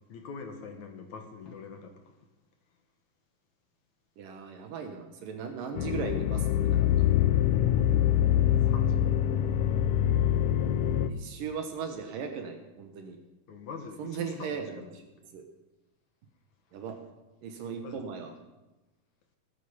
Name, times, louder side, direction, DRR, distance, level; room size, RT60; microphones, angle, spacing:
voice 1, 0.1-1.9 8.6-9.1 13.5-14.9 17.8-18.0, left 5 dB, 60° left, 5 dB, 2.2 m, -43 dB
voice 2, 4.2-7.2 11.1-13.2 14.0-14.9 15.3-15.4 16.7-17.0 17.4-18.3, right 6 dB, 65° right, 5 dB, 2.7 m, -38 dB
sound 1, 5.8-11.1, left 11 dB, 90° left, 1.8 m, -24 dB
18.5 x 9.4 x 5.7 m, 1.1 s
omnidirectional pair, 4.5 m